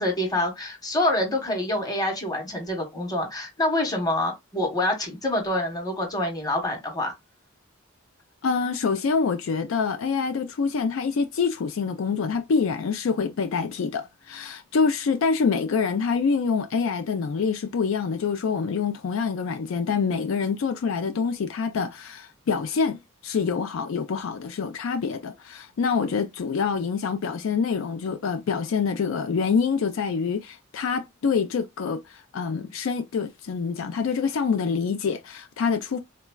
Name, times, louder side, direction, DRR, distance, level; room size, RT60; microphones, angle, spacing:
voice 1, 0.0-7.1, left 1 dB, 20° left, 1.0 m, -26 dB
voice 2, 8.4-36.0, left 5 dB, 75° left, 0.4 m, -26 dB
3.9 x 2.2 x 2.2 m
head